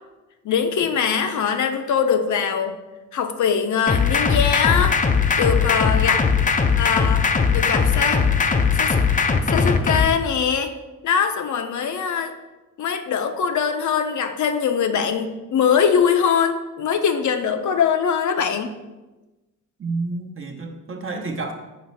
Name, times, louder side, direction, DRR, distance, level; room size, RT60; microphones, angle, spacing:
voice 1, 0.4-2.8 3.1-5.0 5.4-6.3 6.8-7.3 7.5-8.3 8.8-9.0 9.5-10.7 11.0-12.3 12.8-18.8, left 7 dB, 65° left, 7 dB, 0.6 m, -22 dB
sound 1, 3.9-10.1, left 5 dB, 25° left, 0.5 m, -19 dB
voice 2, 19.8-21.5, right 3 dB, 40° right, 3 dB, 0.9 m, -29 dB
5.9 x 3.1 x 5.6 m, 1.1 s
cardioid pair, 85°, 32 cm